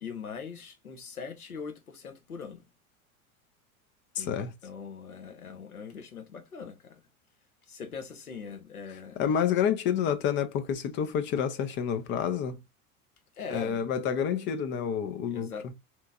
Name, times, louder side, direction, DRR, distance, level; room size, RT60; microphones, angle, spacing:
voice 1, 0.0-2.6 4.2-4.4 4.6-7.0 7.7-9.2 13.4-13.8 15.3-15.7, left 6 dB, 90° left, 0.9 m, -41 dB
voice 2, 4.2-4.5 9.2-12.6 13.5-15.5, left 8 dB, 30° left, 0.4 m, -28 dB
4.1 x 3.0 x 2.3 m
figure-of-eight pair, 85°, 43 cm